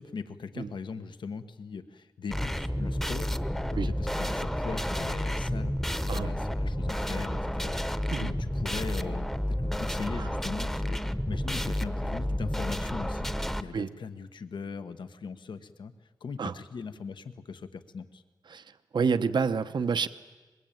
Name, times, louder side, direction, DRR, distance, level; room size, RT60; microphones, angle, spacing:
voice 1, 0.0-3.4 3.8-9.3 9.6-11.0 11.3-15.9 16.2-18.2, left 5 dB, 80° left, 10 dB, 1.1 m, -40 dB
sound 1, 2.3-13.6, equal, 5° left, 0.9 m, -30 dB
voice 2, 18.5-20.1, right 5 dB, 70° right, 10 dB, 0.8 m, -29 dB
24.0 x 21.5 x 9.1 m, 1.3 s
wide cardioid pair, 100°, 8 cm